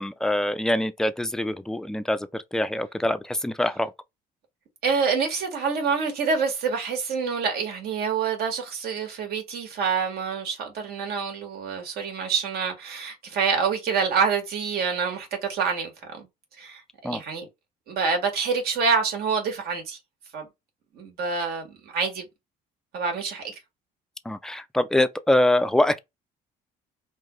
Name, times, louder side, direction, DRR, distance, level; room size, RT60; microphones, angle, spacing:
voice 1, 0.0-3.9 17.0-17.2 24.3-26.0, left 1 dB, 5° left, 0.4 m, -24 dB
voice 2, 4.8-16.3 16.6-17.5 17.9-20.0 20.3-20.5 20.9-22.3 22.9-23.5, right 5 dB, 70° right, 1.8 m, -27 dB
3.8 x 2.5 x 3.1 m
cardioid pair, 110°, 17 cm